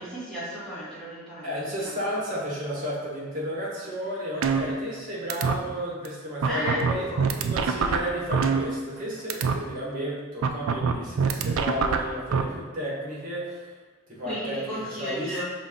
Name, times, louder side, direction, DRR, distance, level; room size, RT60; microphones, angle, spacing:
voice 1, 0.0-2.0 6.4-7.3 14.2-15.4, equal, 5° left, -11 dB, 1.5 m, -34 dB
voice 2, 1.4-7.0 7.4-13.6 14.1-15.4, equal, 40° right, -5 dB, 1.3 m, -32 dB
sound 1, 4.4-5.0 5.3-5.5 6.0-6.1 6.4-9.0 9.3-9.5 10.4-12.4, right 5 dB, 70° right, 0.3 m, -24 dB
5.2 x 2.6 x 3.7 m, 1.4 s
head